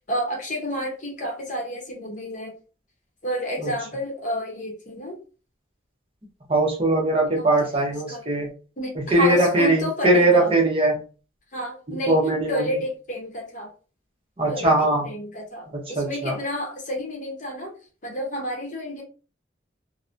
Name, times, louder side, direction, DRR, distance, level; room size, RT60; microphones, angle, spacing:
voice 1, 0.1-2.5 3.2-5.2 8.1-8.2 8.8-10.5 11.5-12.2 12.5-13.7 14.5-17.7 18.0-19.0, equal, 40° left, 0 dB, 0.8 m, -30 dB
voice 2, 6.5-8.5 9.0-11.0 11.9-12.7 14.4-15.1 15.7-16.4, right 2 dB, 30° right, 0 dB, 0.7 m, -21 dB
2.8 x 2.0 x 2.5 m, 0.36 s
head